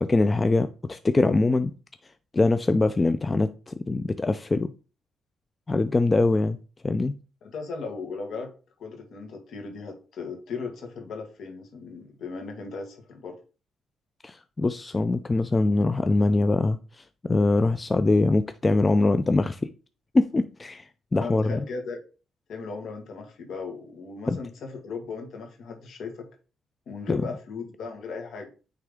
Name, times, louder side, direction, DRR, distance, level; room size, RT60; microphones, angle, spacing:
voice 1, 0.0-1.7 2.3-4.7 5.7-6.6 6.8-7.2 14.2-19.7 20.1-21.6 24.3-24.4 27.1-27.2, left 2 dB, 25° left, 0.4 m, -23 dB
voice 2, 7.4-8.5 8.8-13.4 21.1-22.0 22.5-26.3 26.9-28.5, left 4 dB, 65° left, 1.8 m, -37 dB
9.2 x 3.5 x 3.6 m
cardioid pair, 90°, 0 cm